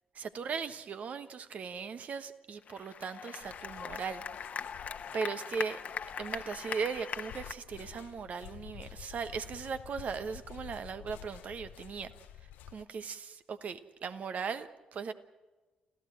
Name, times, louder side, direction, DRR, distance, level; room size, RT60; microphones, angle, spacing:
voice 1, 0.1-4.2 5.1-5.8 6.2-12.1 12.7-15.1, right 6 dB, 55° right, 1.3 m, -38 dB
sound 1, 2.6-7.5, left 7 dB, 55° left, 1.2 m, -40 dB
sound 2, 3.4-12.8, left 12 dB, 70° left, 0.6 m, -51 dB
29.5 x 15.0 x 7.8 m
hypercardioid pair, 40°, 3 cm